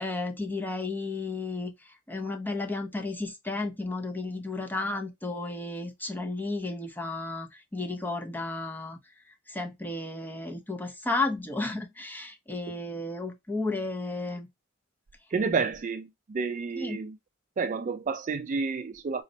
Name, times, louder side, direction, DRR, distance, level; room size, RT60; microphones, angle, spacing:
voice 1, 0.0-9.0 9.5-14.5 16.8-17.0, left 2 dB, 10° left, 0.7 m, -33 dB
voice 2, 15.3-17.2 17.6-19.2, right 5 dB, 40° right, 0.4 m, -30 dB
4.0 x 3.1 x 2.7 m
head